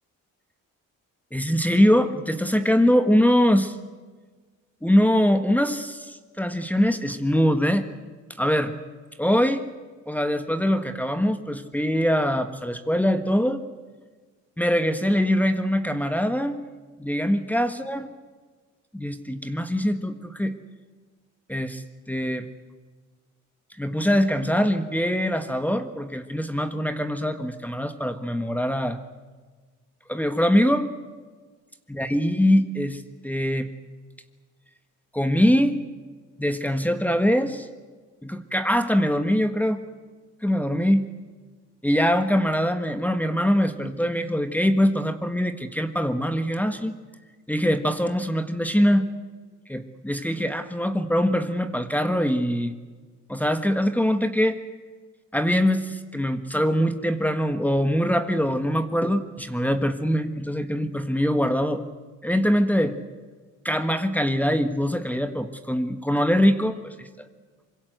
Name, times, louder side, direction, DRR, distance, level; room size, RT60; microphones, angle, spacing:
voice 1, 1.3-3.7 4.8-7.9 8.4-8.7 9.2-9.7 10.1-13.6 14.6-16.6 17.0-18.1 18.9-20.5 21.5-22.5 23.8-29.0 30.1-30.9 31.9-33.7 35.1-35.8 36.4-37.7 38.2-39.8 40.4-41.1 41.8-47.0 47.5-49.1 49.7-52.7 53.3-54.6 55.3-61.8 62.2-63.0 63.6-67.3, equal, 5° left, 9 dB, 1.6 m, -23 dB
25.0 x 23.0 x 8.0 m, 1.4 s
cardioid pair, 90°, 30 cm